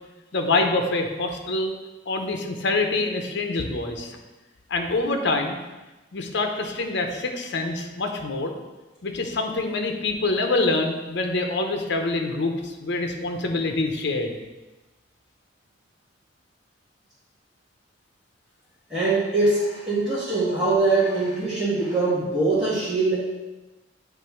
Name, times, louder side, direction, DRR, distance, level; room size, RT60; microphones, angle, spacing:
voice 1, 0.3-1.7 2.1-4.2 4.7-5.6 6.1-8.5 9.0-14.4, left 2 dB, 65° left, 4 dB, 0.8 m, -25 dB
voice 2, 18.9-23.2, right 3 dB, 5° right, -14 dB, 1.9 m, -22 dB
8.2 x 3.3 x 4.4 m, 1.1 s
head